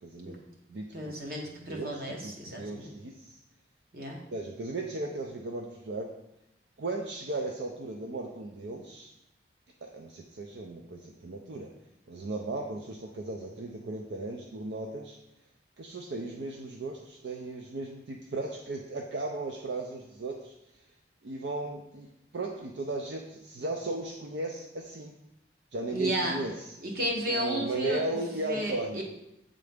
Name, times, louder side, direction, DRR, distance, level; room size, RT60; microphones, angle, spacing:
voice 1, 0.0-0.4 0.7-1.1 1.5-1.9 2.2-3.4 4.3-6.1 6.8-9.1 9.8-11.7 12.1-15.2 15.8-20.5 21.2-22.1 22.3-25.1 25.7-26.7 27.3-29.0, right 2 dB, 70° right, 1 dB, 0.5 m, -36 dB
voice 2, 0.9-2.9 3.9-4.2 25.9-26.4 26.8-28.2 28.4-29.0, right 1 dB, 55° right, 0 dB, 1.1 m, -33 dB
7.6 x 3.7 x 3.5 m, 0.86 s
head